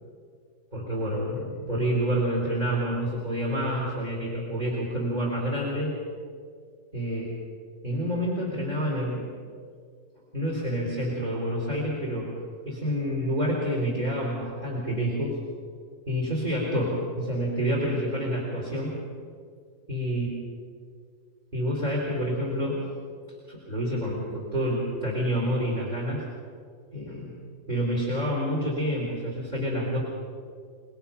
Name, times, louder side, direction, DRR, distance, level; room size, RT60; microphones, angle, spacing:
voice 1, 0.7-5.9 6.9-7.3 7.8-9.3 10.3-12.3 12.7-15.4 16.1-19.0 19.9-20.3 21.5-22.8 23.5-26.2 26.9-27.3 27.7-30.0, equal, 25° right, -4 dB, 4.0 m, -28 dB
25.0 x 21.0 x 5.8 m, 2.1 s
omnidirectional pair, 1.8 m